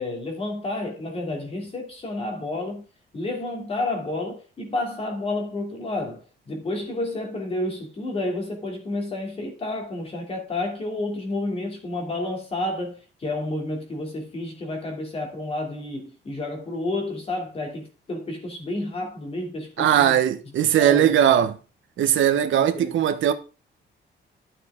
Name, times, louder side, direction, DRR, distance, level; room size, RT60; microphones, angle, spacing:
voice 1, 0.0-2.8 3.1-20.2 20.8-21.5 22.5-22.9, left 2 dB, 30° left, 2.8 m, -30 dB
voice 2, 19.8-21.5 22.0-23.3, right 10 dB, 75° right, 1.2 m, -19 dB
12.5 x 6.6 x 3.7 m
cardioid pair, 180°, 20 cm